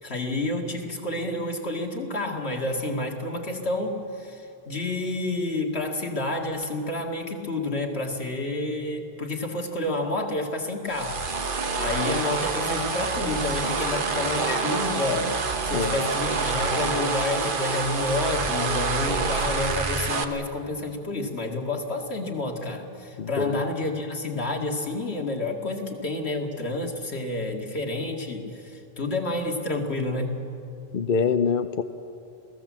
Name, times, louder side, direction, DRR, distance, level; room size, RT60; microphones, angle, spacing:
voice 1, 0.0-11.5 11.8-15.4 15.6-30.5, left 2 dB, 85° left, 2 dB, 2.5 m, -29 dB
sound 1, 10.9-20.2, right 4 dB, 55° right, 1.3 m, -27 dB
voice 2, 23.2-23.6 30.9-31.8, left 5 dB, 60° left, 9 dB, 0.8 m, -25 dB
28.5 x 17.5 x 7.5 m, 2.7 s
omnidirectional pair, 1.1 m